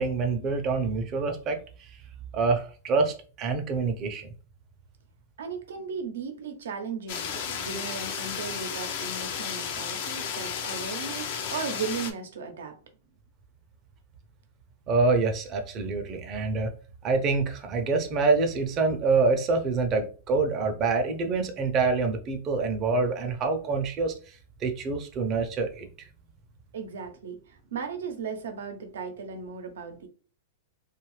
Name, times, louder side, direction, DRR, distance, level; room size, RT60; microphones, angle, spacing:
voice 1, 0.0-1.6 2.3-4.3 14.9-16.7 17.0-24.1 24.6-25.9, right 4 dB, 30° right, 0.6 m, -26 dB
voice 2, 5.4-12.8 26.7-30.1, right 5 dB, 80° right, 0.7 m, -36 dB
sound 1, 7.1-12.1, left 7 dB, 55° left, 0.5 m, -33 dB
2.6 x 2.3 x 3.1 m
hypercardioid pair, 135°, 0 cm